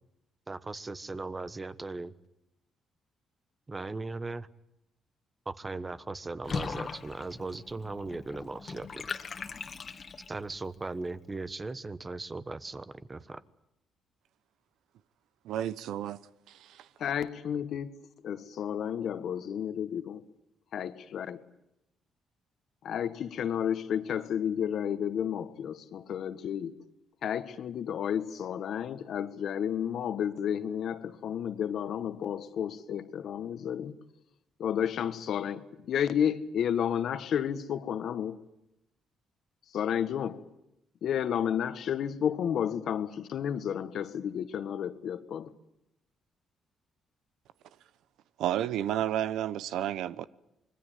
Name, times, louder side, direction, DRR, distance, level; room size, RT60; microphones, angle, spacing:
voice 1, 0.5-2.1 3.7-4.5 5.4-8.9 10.3-13.4, right 3 dB, 25° right, 1.2 m, -38 dB
Water / Bathtub (filling or washing), 6.4-10.5, left 5 dB, 40° left, 2.0 m, -39 dB
voice 2, 15.4-16.2 16.5-16.9 48.4-50.3, right 11 dB, 85° right, 0.9 m, -31 dB
voice 3, 17.0-17.9 18.2-20.2 20.7-21.4 22.8-26.7 27.2-34.0 34.6-38.4 39.7-40.4 41.0-45.5, left 9 dB, 65° left, 1.7 m, -31 dB
25.5 x 21.5 x 9.3 m
cardioid pair, 90°, 0 cm